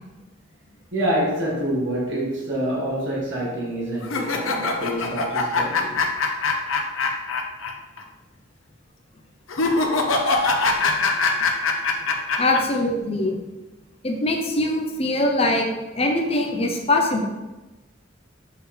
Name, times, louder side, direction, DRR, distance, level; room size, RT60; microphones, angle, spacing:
voice 1, 0.9-6.0, right 1 dB, 60° right, -6 dB, 1.7 m, -26 dB
sound 1, 4.0-7.7 8.0-8.1 9.5-12.6, left 3 dB, 80° left, 0.7 m, -22 dB
voice 2, 12.4-13.4 14.0-15.7 15.9-17.3, left 2 dB, 30° left, 3 dB, 0.7 m, -22 dB
6.7 x 4.7 x 3.3 m, 1.1 s
head